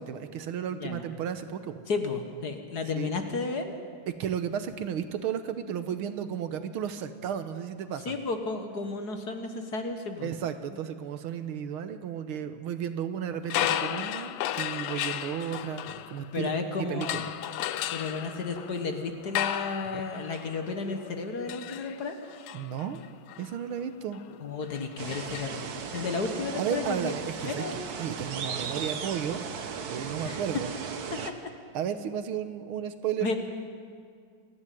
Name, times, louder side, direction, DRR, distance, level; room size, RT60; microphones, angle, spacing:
voice 1, 0.0-1.8 2.9-3.1 4.1-8.1 10.2-16.5 16.9-17.3 19.9-20.0 22.5-23.0 23.4-24.2 26.6-29.4 29.9-30.7 31.7-33.4, right 9 dB, 75° right, 10 dB, 1.8 m, -33 dB
voice 2, 0.7-1.0 1.9-3.7 8.1-10.3 16.3-17.3 17.9-22.1 24.4-27.1 27.4-27.8 30.2-30.4 31.1-31.5 33.2-33.4, left 4 dB, 50° left, 6 dB, 1.8 m, -33 dB
sound 1, 13.4-16.5 17.0-26.0, left 11 dB, 85° left, 1.6 m, -35 dB
sound 2, 25.0-31.3, right 6 dB, 50° right, 1.5 m, -36 dB
28.5 x 11.0 x 9.2 m, 2.2 s
omnidirectional pair, 2.4 m